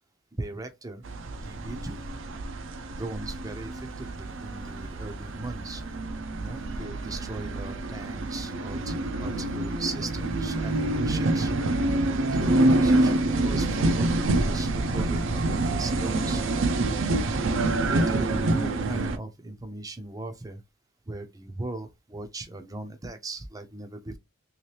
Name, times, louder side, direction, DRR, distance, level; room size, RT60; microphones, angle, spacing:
voice 1, 0.4-1.0 1.3-2.0 3.0-5.8 6.4-11.5 12.3-16.4 17.2-20.6 21.1-24.2, right 2 dB, 15° right, 0.5 m, -38 dB
sound 1, 1.0-19.2, right 2 dB, 65° right, 0.5 m, -27 dB
3.1 x 3.0 x 3.2 m
head